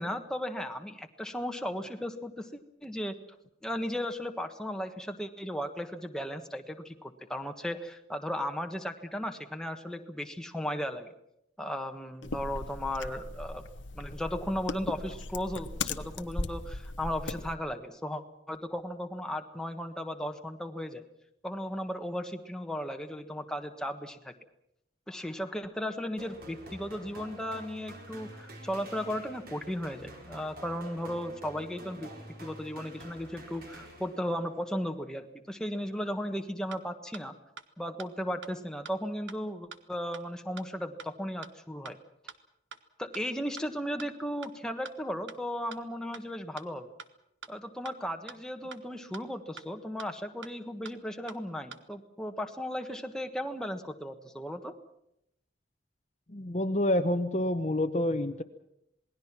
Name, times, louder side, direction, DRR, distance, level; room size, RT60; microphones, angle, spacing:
voice 1, 0.0-3.2 3.6-11.1 11.6-13.6 13.9-21.0 21.4-24.3 25.1-32.1 32.4-37.3 37.8-42.0 43.0-46.9 47.5-54.7, equal, 5° left, 5 dB, 1.4 m, -36 dB
sound 1, 12.2-17.5, left 3 dB, 85° left, 1.1 m, -38 dB
sound 2, 26.2-34.5, right 1 dB, 50° right, 4.6 m, -48 dB
sound 3, 36.7-36.8 37.1-37.2 37.6-37.7 38.0-38.1 38.4-38.5 38.8-38.9 39.3-39.4 39.7-39.8 40.1-40.2 40.6-40.7 41.0-41.1 41.4-41.5 41.8-41.9 42.3-42.4 42.7-42.8 43.1-43.2 43.6-43.7 44.0-44.1 44.4-44.5 44.8-44.9 45.3-45.4 45.7-45.8 46.1-46.2 46.6-46.7 47.0-47.1 47.4-47.5 47.8-47.9 48.3-48.4 48.7-48.8 49.1-49.2 49.6-49.7 50.0-50.1 50.4-50.5 50.8-50.9 51.3-51.4 51.7-51.8, right 6 dB, 80° right, 1.4 m, -44 dB
voice 2, 56.3-58.4, left 1 dB, 35° left, 8 dB, 0.9 m, -28 dB
27.5 x 20.0 x 6.0 m, 0.80 s
head